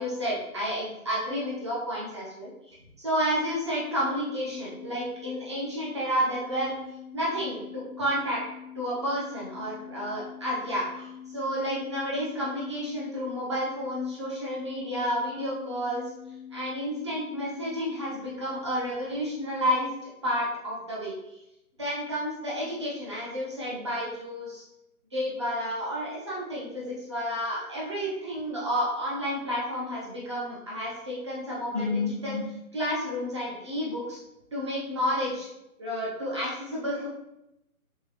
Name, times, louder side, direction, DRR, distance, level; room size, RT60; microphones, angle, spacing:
voice 1, 0.0-2.5 3.0-6.7 7.1-8.4 8.7-16.0 16.5-19.9 20.2-21.4 21.8-24.6 25.1-32.4 32.7-34.2 34.5-35.5 35.8-37.1, equal, 20° right, -6 dB, 0.8 m, -30 dB
sound 1, 4.0-17.8, left 8 dB, 70° left, 0.6 m, -45 dB
3.7 x 3.5 x 3.1 m, 0.87 s
figure-of-eight pair, 155°, 45 cm